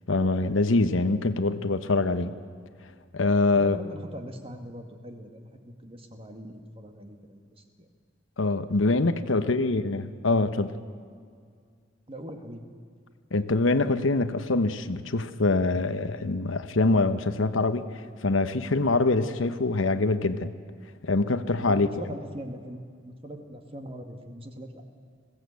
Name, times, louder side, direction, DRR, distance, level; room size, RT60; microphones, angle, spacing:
voice 1, 0.1-2.3 3.1-3.8 8.4-10.7 13.3-17.9 18.2-20.5 21.0-21.9, left 3 dB, 85° left, 11 dB, 1.0 m, -24 dB
voice 2, 3.5-7.9 9.3-9.6 12.1-12.8 21.7-24.8, equal, 30° right, 5 dB, 1.9 m, -41 dB
21.5 x 16.5 x 8.3 m, 2.1 s
head